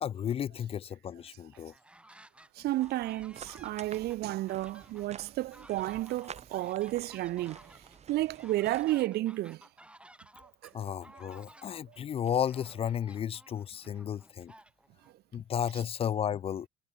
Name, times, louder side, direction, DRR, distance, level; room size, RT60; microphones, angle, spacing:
voice 1, 0.0-1.7 10.7-14.5 15.3-16.7, left 9 dB, 35° left, 0.3 m, -33 dB
sound 1, 1.5-2.5 2.8-15.1, right 1 dB, 5° right, 7.6 m, -56 dB
sound 2, 2.1-13.0, right 20 dB, 90° right, 4.7 m, -67 dB
voice 2, 2.6-7.6 8.1-9.7 10.6-10.7, right 16 dB, 70° right, 0.7 m, -32 dB
sound 3, 2.8-9.0, right 7 dB, 40° right, 5.1 m, -51 dB
cardioid pair, 110°, 17 cm